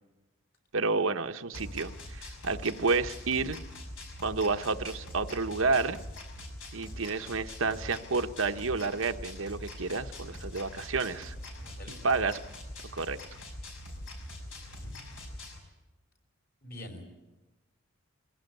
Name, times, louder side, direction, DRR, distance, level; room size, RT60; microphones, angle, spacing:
voice 1, 0.7-3.6 4.2-6.0 6.7-11.3 12.0-12.4 12.9-13.2, right 4 dB, 70° right, 7 dB, 1.0 m, -30 dB
sound 1, 1.5-15.6, left 1 dB, 65° left, 5.9 m, -43 dB
voice 2, 11.6-11.9 14.4-14.9 16.6-17.0, left 1 dB, 45° left, 3 dB, 5.5 m, -46 dB
23.0 x 17.0 x 9.4 m, 1.0 s
head